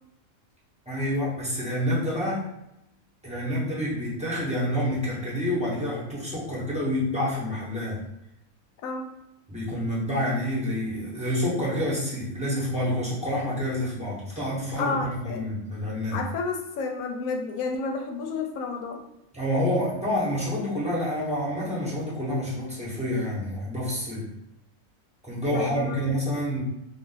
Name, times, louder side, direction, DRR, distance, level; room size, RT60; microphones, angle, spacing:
voice 1, 0.9-2.4 3.2-8.0 9.5-14.9 15.3-16.2 19.3-24.3 25.2-26.6, equal, 5° right, -7 dB, 0.8 m, -28 dB
voice 2, 14.8-15.4 16.1-19.0 25.5-26.2, left 4 dB, 85° left, 3 dB, 1.0 m, -31 dB
2.5 x 2.4 x 3.8 m, 0.84 s
omnidirectional pair, 1.4 m